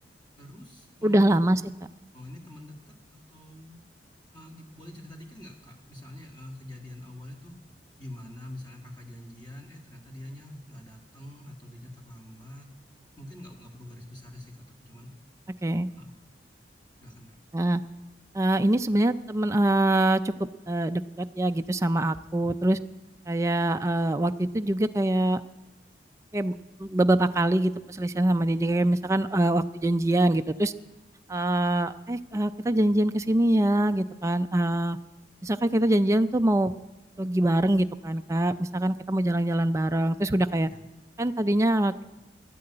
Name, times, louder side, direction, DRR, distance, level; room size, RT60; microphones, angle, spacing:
voice 1, 0.4-1.4 2.1-3.8 4.3-7.6 8.0-12.7 13.2-15.1 16.0-16.1 17.0-17.3 40.7-40.8, left 1 dB, 25° left, 1 dB, 1.6 m, -45 dB
voice 2, 1.0-1.6 15.6-15.9 17.5-17.8 18.3-20.3 20.7-22.8 23.3-25.4 26.3-26.5 26.8-30.7 31.3-35.0 35.4-36.7 37.2-40.7 41.2-41.9, right 1 dB, 15° right, 8 dB, 0.4 m, -24 dB
11.5 x 10.5 x 8.7 m, 1.0 s
head